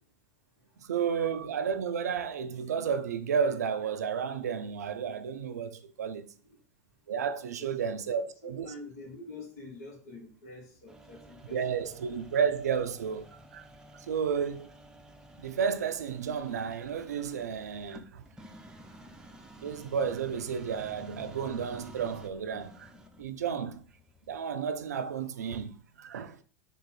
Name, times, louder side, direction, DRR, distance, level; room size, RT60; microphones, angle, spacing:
voice 1, 0.8-6.3 7.1-8.7 11.5-13.7 14.0-14.7 15.4-18.2 19.6-22.9 23.2-23.8 24.3-26.4, right 7 dB, 80° right, 0.4 m, -32 dB
voice 2, 7.6-11.7, left 2 dB, 70° left, 1.2 m, -47 dB
sound 1, 10.9-24.4, right 1 dB, 10° right, 0.5 m, -52 dB
3.7 x 2.4 x 4.1 m
hypercardioid pair, 85°, 9 cm